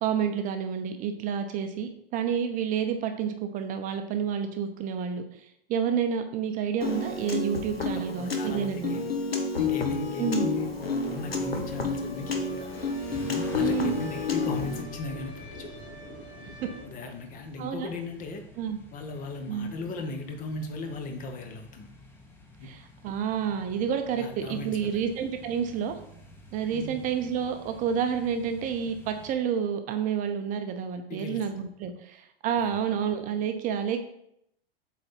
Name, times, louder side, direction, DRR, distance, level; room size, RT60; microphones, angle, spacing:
voice 1, 0.0-9.0 10.2-10.5 13.6-14.0 16.6-16.7 17.6-17.9 18.6-18.8 19.5-19.7 22.6-26.0 26.5-34.0, right 7 dB, 25° right, 7 dB, 0.7 m, -29 dB
Piano, 6.8-14.8, left 4 dB, 75° left, 1.1 m, -30 dB
voice 2, 7.8-9.1 9.5-12.8 13.5-15.8 16.8-18.4 18.9-21.9 22.6-22.7 24.2-25.1 26.7-27.0 31.1-31.4 32.6-32.9, left 3 dB, 25° left, 5 dB, 1.1 m, -37 dB
sound 1, 10.5-16.8, left 1 dB, 55° left, 1.8 m, -43 dB
sound 2, 12.7-29.3, left 1 dB, 5° left, 1.2 m, -49 dB
7.8 x 4.1 x 4.4 m, 0.76 s
figure-of-eight pair, 90°, 30 cm